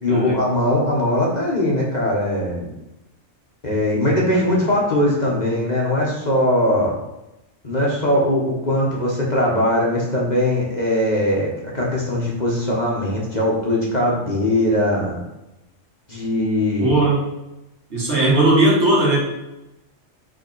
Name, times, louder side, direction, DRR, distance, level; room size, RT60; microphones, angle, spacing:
voice 1, 0.0-2.7 3.6-6.9 7.6-11.5 11.7-15.2 16.1-17.0, left 1 dB, 35° left, -3 dB, 1.4 m, -20 dB
voice 2, 16.8-17.2 17.9-19.2, right 2 dB, 60° right, -3 dB, 1.9 m, -17 dB
5.3 x 4.3 x 4.6 m, 0.92 s
omnidirectional pair, 1.3 m